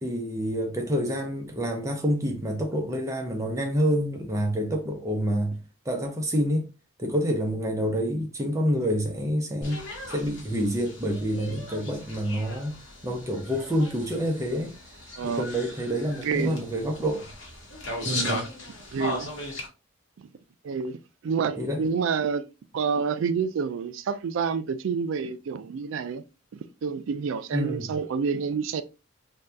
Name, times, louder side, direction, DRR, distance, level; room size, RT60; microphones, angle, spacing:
voice 1, 0.0-6.7 7.0-14.8 15.2-17.3 18.0-18.5 21.6-21.9 27.5-27.9, equal, 15° right, 0.5 m, -28 dB
sound 1, 9.6-19.7, left 2 dB, 70° left, 1.0 m, -37 dB
voice 2, 15.2-15.5 16.2-16.6 18.0-18.4 18.9-19.3 20.2-20.3 20.6-22.5 22.7-26.2 26.5-28.8, right 6 dB, 65° right, 0.3 m, -28 dB
2.7 x 2.2 x 3.3 m
head